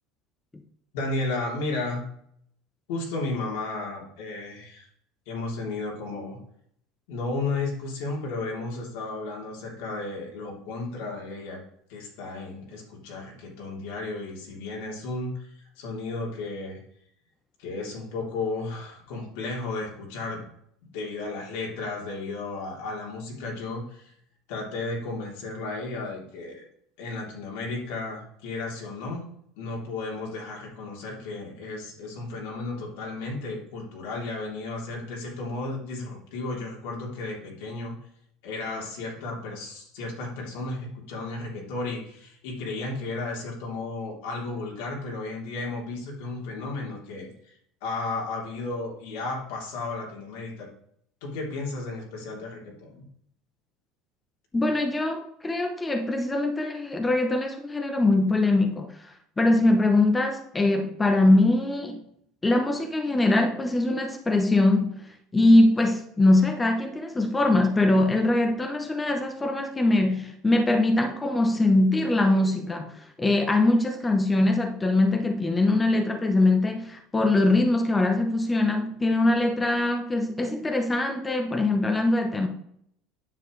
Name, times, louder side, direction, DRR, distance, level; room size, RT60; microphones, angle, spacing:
voice 1, 0.9-2.0 2.9-4.9 5.3-6.4 7.1-11.6 11.9-16.8 17.6-20.5 20.8-24.1 24.5-26.6 27.0-29.2 29.6-38.0 38.4-50.7 51.2-53.0, left 3 dB, 80° left, 3.2 m, -33 dB
voice 2, 54.5-62.0 62.4-82.5, left 2 dB, 15° left, 0.8 m, -22 dB
9.5 x 7.1 x 3.2 m
supercardioid pair, 135°, 0 cm